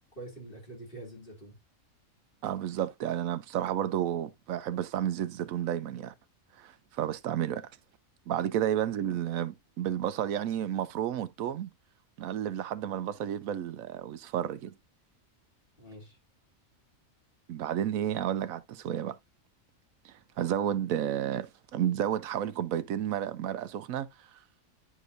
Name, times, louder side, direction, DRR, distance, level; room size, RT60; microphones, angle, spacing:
voice 1, 0.2-1.6 8.3-8.5 15.8-16.2, right 1 dB, 40° left, 3.0 m, -45 dB
voice 2, 2.4-6.1 6.6-7.7 8.3-11.7 12.2-14.8 17.5-19.2 20.0-24.3, right 10 dB, 85° right, 1.1 m, -31 dB
10.0 x 4.9 x 2.5 m
omnidirectional pair, 1.4 m